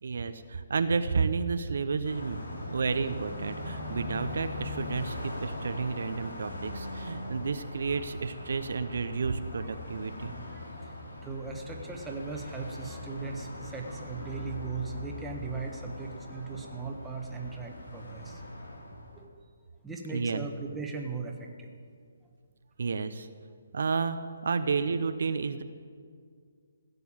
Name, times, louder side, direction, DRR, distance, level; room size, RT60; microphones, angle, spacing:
voice 1, 0.0-10.3 20.1-20.5 22.8-23.3 23.7-25.6, right 5 dB, 70° right, 10 dB, 0.7 m, -31 dB
Car passing by, 2.0-19.3, left 1 dB, 90° left, 2.6 m, -41 dB
voice 2, 10.2-18.4 19.1-19.3 19.8-21.7, right 4 dB, 5° right, 0 dB, 1.3 m, -39 dB
16.0 x 6.9 x 8.7 m, 2.1 s
hypercardioid pair, 155°, 0 cm